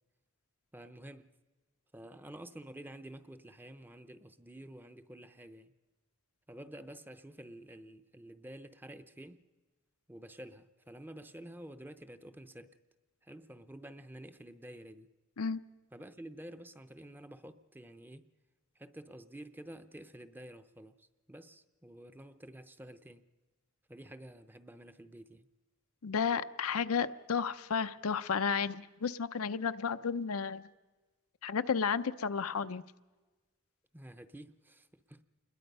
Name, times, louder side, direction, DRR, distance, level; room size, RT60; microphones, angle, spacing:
voice 1, 0.7-1.3 1.9-5.7 6.5-9.4 10.1-12.8 13.2-15.1 15.9-18.3 18.8-23.2 23.9-25.5 33.9-35.2, right 1 dB, 10° right, 0.6 m, -50 dB
voice 2, 26.0-30.6 31.4-32.8, left 6 dB, 90° left, 0.7 m, -32 dB
27.0 x 21.0 x 5.5 m
head